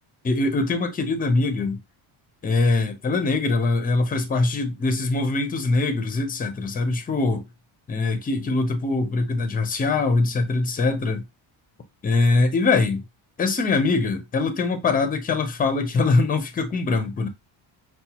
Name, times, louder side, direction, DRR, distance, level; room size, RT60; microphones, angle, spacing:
voice 1, 0.2-1.8 2.4-7.5 7.9-11.2 12.0-13.0 13.4-17.3, left 3 dB, 20° left, 0.4 m, -22 dB
5.8 x 2.2 x 2.8 m
cardioid pair, 180°, 48 cm